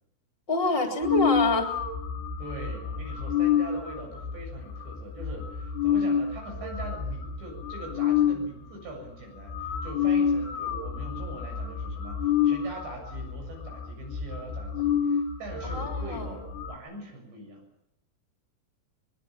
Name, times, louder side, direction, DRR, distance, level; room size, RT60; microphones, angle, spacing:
voice 1, 0.5-1.7 15.6-16.3, left 2 dB, 15° left, 4 dB, 3.0 m, -27 dB
sound 1, 1.0-8.4 9.1-9.2 9.4-16.8, left 7 dB, 70° left, 3.8 m, -28 dB
voice 2, 2.4-17.6, right 1 dB, 75° right, 2 dB, 9.6 m, -42 dB
24.5 x 22.0 x 7.4 m, 0.83 s
omnidirectional pair, 5.0 m